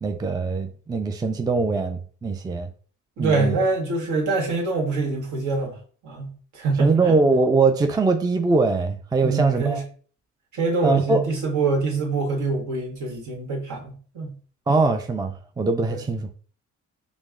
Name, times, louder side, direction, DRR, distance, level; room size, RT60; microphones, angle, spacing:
voice 1, 0.0-2.7 3.2-3.6 6.8-9.8 10.8-11.3 14.7-16.4, right 3 dB, 15° right, 0.4 m, -22 dB
voice 2, 3.2-5.8 6.0-7.1 9.2-9.8 10.5-14.3 15.9-16.0, right 3 dB, 75° right, 1.5 m, -25 dB
5.1 x 2.0 x 3.6 m
cardioid pair, 90°, 30 cm